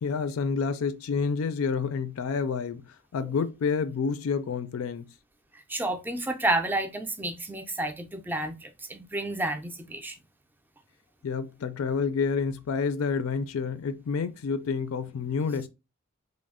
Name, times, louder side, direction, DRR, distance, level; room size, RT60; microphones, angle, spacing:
voice 1, 0.0-5.1 11.2-15.7, left 5 dB, 85° left, 0.4 m, -29 dB
voice 2, 5.5-10.2, right 2 dB, 10° right, 0.3 m, -30 dB
3.1 x 2.0 x 3.5 m
head